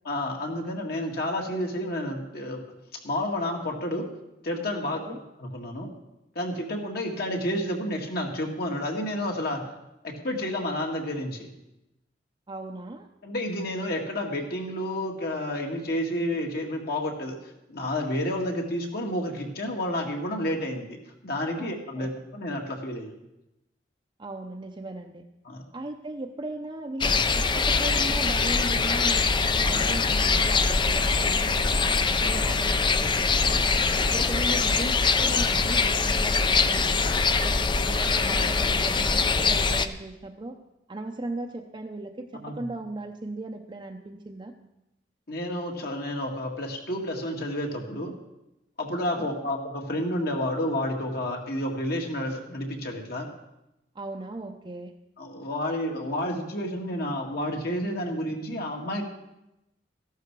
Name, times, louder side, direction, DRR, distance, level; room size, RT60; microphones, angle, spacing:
voice 1, 0.1-2.6 2.9-4.1 4.4-5.0 5.4-5.9 6.4-9.7 10.0-11.5 13.2-17.4 17.7-21.0 21.2-23.2 25.5-25.6 42.4-42.7 45.3-48.1 48.8-53.3 55.2-59.0, left 1 dB, 60° left, 1 dB, 2.0 m, -30 dB
voice 2, 4.8-5.2 12.5-13.1 21.6-22.1 24.2-25.2 25.7-33.7 34.1-37.0 37.4-40.6 40.9-44.5 49.2-49.5 53.9-54.9, right 2 dB, 25° right, 2 dB, 0.6 m, -37 dB
sound 1, 27.0-39.9, left 4 dB, 25° left, 0.5 m, -23 dB
14.0 x 11.5 x 4.7 m, 0.92 s
head